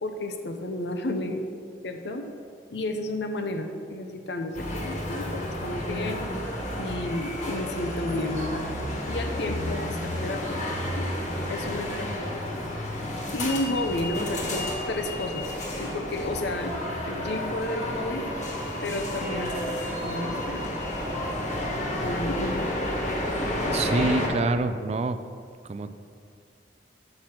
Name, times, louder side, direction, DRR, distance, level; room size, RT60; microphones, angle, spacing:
voice 1, 0.0-1.4 1.8-2.2 2.7-6.2 6.8-8.6 9.1-10.6 10.9-11.1 11.5-12.6 13.3-15.5 15.8-16.7 17.1-18.2 18.8-19.8 20.0-20.6 21.8-22.7, left 1 dB, 65° left, 5 dB, 0.7 m, -32 dB
sound 1, 4.5-24.3, left 1 dB, 45° left, 1.4 m, -31 dB
voice 2, 23.7-25.2 25.6-26.0, right 3 dB, 35° right, 11 dB, 0.3 m, -26 dB
6.7 x 6.0 x 5.8 m, 2.3 s
head